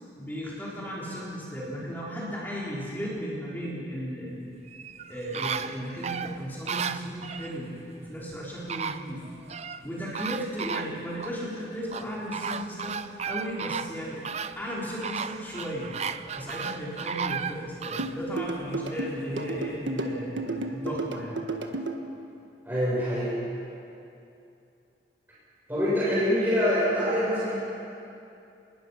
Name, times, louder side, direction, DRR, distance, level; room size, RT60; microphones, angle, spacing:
voice 1, 0.1-4.5 5.1-9.2 9.8-13.0 13.3-14.2 14.6-16.0 16.4-21.4, equal, 10° left, -6 dB, 4.0 m, -35 dB
sound 1, 4.7-7.5 8.3-8.4 8.7-9.8 10.1-11.4 11.9-18.2 18.6-18.7, right 6 dB, 35° right, 0.5 m, -34 dB
sound 2, 18.0-22.0, right 2 dB, 80° right, 1.5 m, -32 dB
voice 2, 22.6-23.3 25.7-27.5, equal, 10° right, -10 dB, 7.4 m, -25 dB
27.0 x 21.0 x 5.7 m, 2.7 s
head